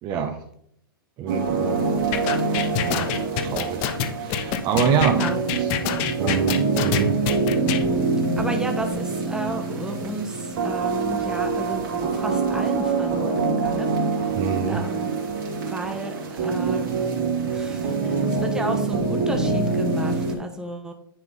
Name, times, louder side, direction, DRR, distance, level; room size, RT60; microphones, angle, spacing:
voice 1, 0.0-0.4 1.2-1.9 2.8-3.1 3.4-5.7 6.0-7.2 14.4-14.8, right 6 dB, 35° right, 5 dB, 0.8 m, -27 dB
sound 1, 1.3-20.4, right 4 dB, 65° right, 2.4 m, -25 dB
sound 2, 2.1-7.8, left 10 dB, 40° left, 0.7 m, -26 dB
voice 2, 5.0-5.4 8.4-13.9 14.7-15.1 15.7-16.9 17.5-20.9, right 2 dB, 5° right, 4 dB, 1.1 m, -33 dB
9.9 x 3.9 x 3.8 m, 0.69 s
hypercardioid pair, 110°, 12 cm